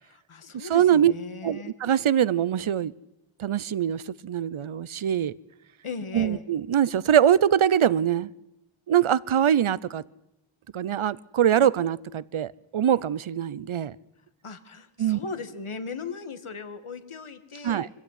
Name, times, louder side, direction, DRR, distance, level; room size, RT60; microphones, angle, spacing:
voice 1, 0.0-1.7 5.8-6.4 14.4-17.9, left 4 dB, 80° left, 1.9 m, -38 dB
voice 2, 0.5-1.1 1.4-2.9 3.4-5.3 6.1-8.3 8.9-10.0 10.7-13.9 15.0-15.2 17.6-17.9, right 9 dB, 75° right, 0.8 m, -23 dB
24.5 x 15.5 x 9.8 m
wide cardioid pair, 50°, 49 cm